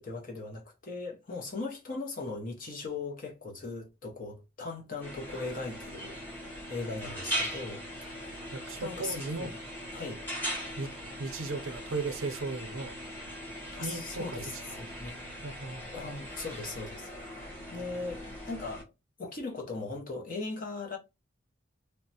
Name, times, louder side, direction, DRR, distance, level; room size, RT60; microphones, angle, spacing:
voice 1, 0.0-6.2 6.7-7.8 8.2-8.5 8.8-9.6 9.9-10.2 13.7-15.2 15.9-18.9 19.2-21.0, left 3 dB, 40° left, 0.6 m, -39 dB
sound 1, 5.0-18.8, equal, 10° left, 0.9 m, -40 dB
voice 2, 8.5-9.5 10.8-10.9 11.2-12.9 13.8-14.8 15.4-15.9, right 3 dB, 85° right, 0.6 m, -36 dB
3.2 x 2.0 x 2.7 m
head